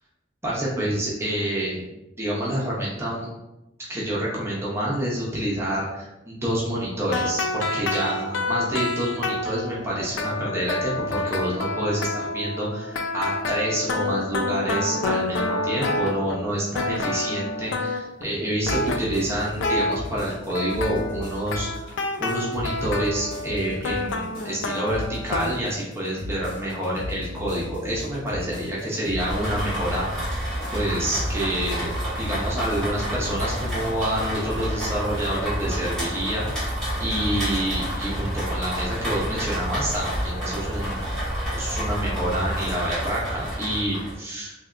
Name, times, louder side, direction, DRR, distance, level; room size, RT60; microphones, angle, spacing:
voice 1, 0.4-1.8 2.2-3.3 3.9-31.9 32.2-36.7 37.0-44.5, right 1 dB, 15° right, -6 dB, 0.6 m, -28 dB
sound 1, 7.0-16.5 16.7-18.2 18.6-20.0 20.5-25.5, left 2 dB, 80° left, 0.4 m, -28 dB
sound 2, 18.6-35.3, left 1 dB, 60° left, 1.4 m, -37 dB
Rain, 29.2-44.1, equal, 5° left, 1.1 m, -29 dB
3.3 x 2.8 x 2.4 m, 0.95 s
head